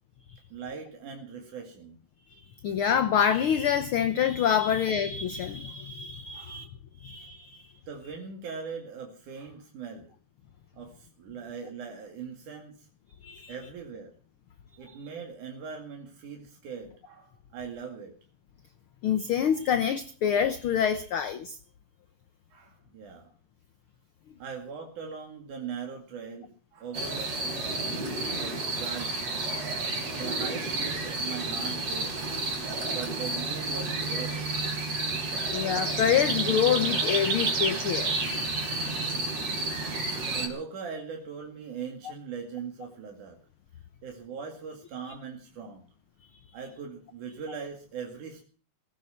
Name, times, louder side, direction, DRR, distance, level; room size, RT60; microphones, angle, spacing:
voice 1, 0.5-2.0 4.6-4.8 6.3-6.7 7.9-10.1 10.7-12.9 13.5-14.1 14.8-18.1 19.5-19.6 22.5-23.3 24.4-27.8 28.3-29.3 30.1-32.3 32.9-34.5 37.2-37.4 39.4-39.8 40.3-43.4 44.0-45.9 46.5-48.4, right 6 dB, 85° right, 3.8 m, -40 dB
voice 2, 2.6-6.6 7.0-7.7 13.2-13.5 19.0-21.6 35.5-39.7, left 8 dB, 65° left, 1.3 m, -27 dB
sound 1, 26.9-40.5, right 3 dB, 60° right, 4.9 m, -30 dB
17.5 x 14.5 x 5.7 m
omnidirectional pair, 3.4 m